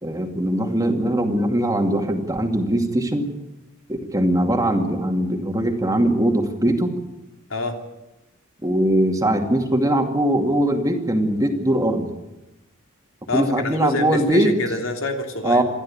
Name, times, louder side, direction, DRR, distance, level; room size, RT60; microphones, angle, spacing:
voice 1, 0.0-3.3 3.9-7.0 8.6-12.1 13.3-14.6 15.4-15.6, right 1 dB, 15° right, 4 dB, 2.4 m, -21 dB
voice 2, 13.3-15.6, left 2 dB, 90° left, 4 dB, 3.1 m, -26 dB
27.5 x 12.0 x 8.8 m, 1.0 s
head